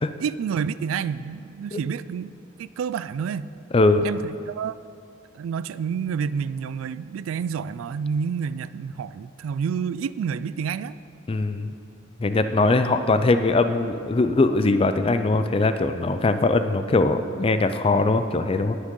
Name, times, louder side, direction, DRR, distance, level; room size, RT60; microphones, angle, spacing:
voice 1, 0.2-2.3 2.6-3.5 4.0-4.8 5.3-11.0, right 6 dB, 80° right, 16 dB, 0.3 m, -29 dB
voice 2, 3.7-4.1 11.3-11.7 12.2-18.8, left 3 dB, 25° left, 9 dB, 0.4 m, -21 dB
18.5 x 6.3 x 3.8 m, 2.4 s
head